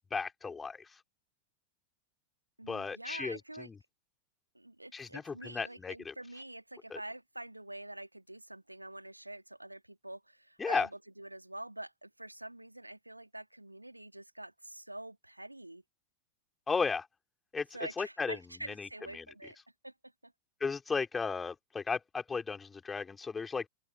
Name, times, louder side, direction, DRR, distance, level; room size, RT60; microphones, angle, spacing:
voice 1, 0.1-0.8 2.7-3.7 4.9-6.1 6.9-7.0 10.6-10.9 16.7-17.1 17.5-17.7 18.0-18.4 18.8-18.9 19.1-19.3 20.6-23.7, left 5 dB, 15° left, 4.0 m, -35 dB
voice 2, 2.6-3.7 4.5-15.8 17.7-19.6 19.8-19.9 20.2-20.3, right 1 dB, 85° right, 2.6 m, -46 dB
open air
figure-of-eight pair, 90°, 0 cm